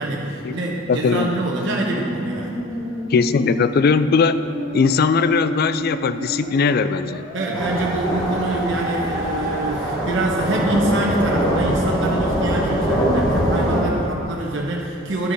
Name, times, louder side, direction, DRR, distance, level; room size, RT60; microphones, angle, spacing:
voice 1, 0.0-2.6 7.3-15.3, right 2 dB, 65° right, -2 dB, 1.1 m, -25 dB
voice 2, 0.9-1.4 3.1-4.4 4.7-7.3, left 5 dB, 50° left, 12 dB, 0.3 m, -19 dB
Musical instrument, 1.1-14.1, equal, 35° right, 2.1 m, -30 dB
sound 1, 7.5-13.8, right 1 dB, 20° left, 1.4 m, -23 dB
10.0 x 6.6 x 5.4 m, 2.7 s
head